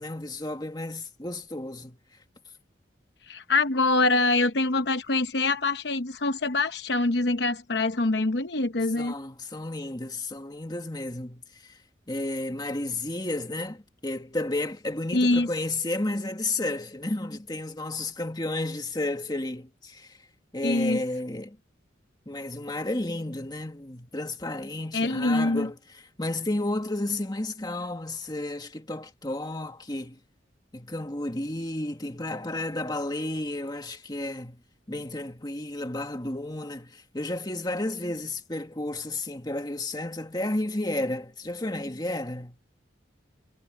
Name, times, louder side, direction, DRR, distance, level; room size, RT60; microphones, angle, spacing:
voice 1, 0.0-2.0 9.0-11.8 12.1-20.2 20.5-21.6 22.3-30.2 30.7-34.6 34.9-42.6, left 2 dB, 20° left, 1.9 m, -32 dB
voice 2, 3.3-9.1 15.1-15.5 20.6-21.0 24.9-25.7, left 2 dB, 60° left, 0.9 m, -24 dB
head